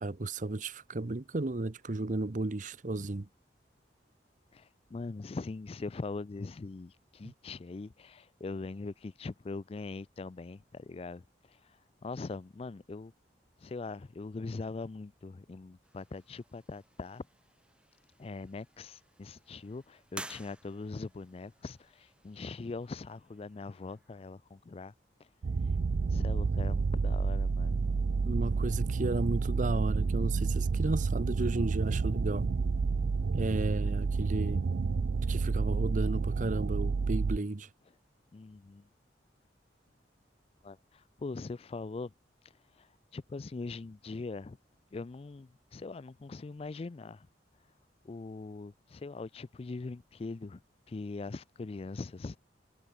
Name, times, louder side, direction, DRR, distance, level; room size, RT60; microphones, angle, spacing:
voice 1, 0.0-3.3 7.2-7.3 28.2-32.5 33.3-34.6 35.3-37.7, right 2 dB, 45° right, 0.8 m, -33 dB
voice 2, 4.5-11.8 12.0-13.1 13.6-17.2 18.2-24.9 26.1-27.8 38.3-38.9 40.6-42.1 42.8-42.9 43.1-44.6 44.9-47.3 48.0-50.6 50.9-52.4, left 3 dB, 35° left, 0.4 m, -41 dB
sound 1, 15.8-24.3, right 2 dB, 5° right, 2.0 m, -53 dB
sound 2, 25.4-37.4, right 4 dB, 65° right, 0.4 m, -30 dB
head